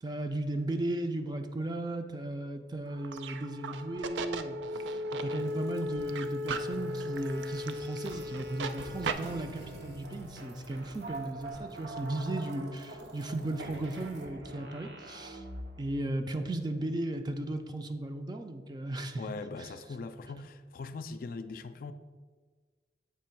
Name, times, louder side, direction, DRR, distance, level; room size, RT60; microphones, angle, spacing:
voice 1, 0.0-15.4 15.8-19.2, right 1 dB, 25° right, 0.4 m, -36 dB
sound 1, 2.9-9.1, equal, 90° right, 0.4 m, -36 dB
sound 2, 4.7-16.0, right 2 dB, 75° right, 0.8 m, -45 dB
voice 2, 19.2-21.9, left 4 dB, 50° left, 0.3 m, -41 dB
7.5 x 3.0 x 5.7 m
head